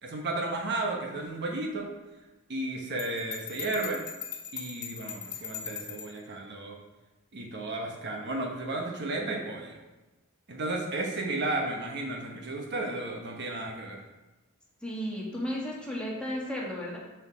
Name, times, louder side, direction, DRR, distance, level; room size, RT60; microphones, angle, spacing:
voice 1, 0.0-1.9 2.5-4.0 4.5-6.8 7.3-9.8 10.5-14.0, right 2 dB, 50° right, 1 dB, 1.1 m, -33 dB
Bell, 3.0-6.2, left 8 dB, 35° left, 1.4 m, -40 dB
voice 2, 14.8-17.0, equal, 5° left, -4 dB, 1.8 m, -34 dB
7.3 x 4.7 x 6.1 m, 1.1 s
head